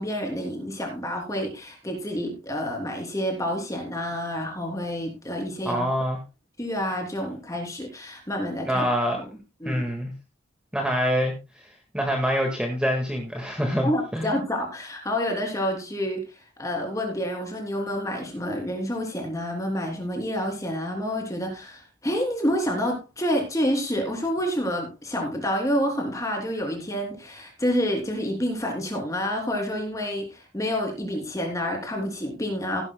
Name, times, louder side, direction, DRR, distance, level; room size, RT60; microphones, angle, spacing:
voice 1, 0.0-5.9 6.6-8.9 9.2-9.3 9.6-9.8 13.8-32.8, equal, 15° left, 2 dB, 3.1 m, -28 dB
voice 2, 5.7-6.2 8.7-9.4 9.6-10.1 10.7-11.3 11.9-14.3, equal, 5° right, 1 dB, 1.7 m, -25 dB
16.5 x 11.0 x 2.3 m, 0.26 s
head